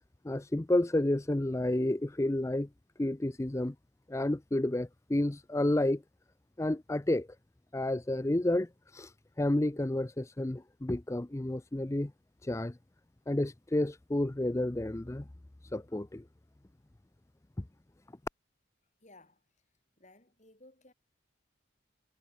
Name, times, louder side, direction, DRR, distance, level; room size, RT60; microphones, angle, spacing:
voice 1, 0.2-2.7 3.0-3.7 4.1-6.0 6.6-7.3 7.7-12.1 12.4-12.8 13.3-15.3 15.6-16.2, left 1 dB, 15° left, 0.5 m, -30 dB
voice 2, 19.0-19.5 20.0-20.9, left 2 dB, 35° left, 5.7 m, -58 dB
head